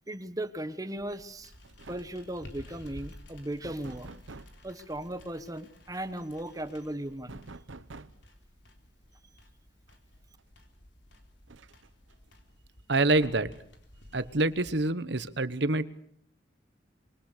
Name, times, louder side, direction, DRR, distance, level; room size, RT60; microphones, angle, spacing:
voice 1, 0.1-1.5 1.9-4.1 4.6-7.4, right 1 dB, 20° right, 11 dB, 1.4 m, -37 dB
sound 1, 1.0-14.7, left 1 dB, 70° left, 3.8 m, -54 dB
sound 2, 1.2-1.4 1.6-2.3 3.6-4.6 7.3-8.3 9.9-10.0 10.4-10.5 11.5-12.1 13.1-13.7, right 3 dB, 90° right, 1.0 m, -48 dB
voice 2, 12.9-13.5 14.1-15.9, right 2 dB, 60° right, 14 dB, 1.2 m, -26 dB
25.5 x 23.5 x 6.8 m, 0.62 s
head